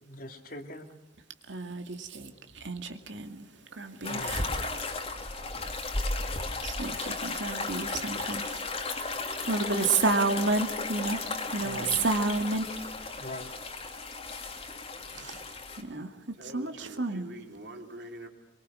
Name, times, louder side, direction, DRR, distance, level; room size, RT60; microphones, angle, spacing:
voice 1, 0.0-0.9 4.1-4.3 6.2-6.5 11.6-11.9 13.2-13.5, left 1 dB, 50° left, 5 dB, 2.7 m, -42 dB
voice 2, 1.5-5.7 6.6-13.1 15.1-15.4 15.8-17.3, right 3 dB, 75° right, 6 dB, 2.3 m, -32 dB
sound 1, 4.0-15.8, left 3 dB, 30° left, 2.8 m, -35 dB
voice 3, 16.3-18.3, right 1 dB, 60° right, 3 dB, 4.0 m, -44 dB
25.0 x 23.0 x 6.3 m, 0.92 s
head